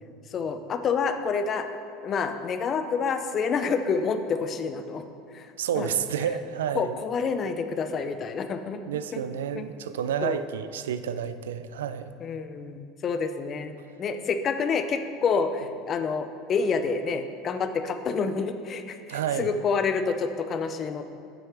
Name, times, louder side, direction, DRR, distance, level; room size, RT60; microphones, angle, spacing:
voice 1, 0.3-1.7 2.0-5.0 5.3-5.5 5.8-5.9 6.8-8.8 9.1-9.2 9.5-9.7 10.2-10.4 12.2-21.0, left 5 dB, 40° left, 8 dB, 0.5 m, -28 dB
voice 2, 5.6-7.0 8.9-12.1 19.1-19.5, right 8 dB, 85° right, 12 dB, 0.3 m, -30 dB
9.0 x 6.1 x 3.3 m, 2.4 s
hypercardioid pair, 90°, 0 cm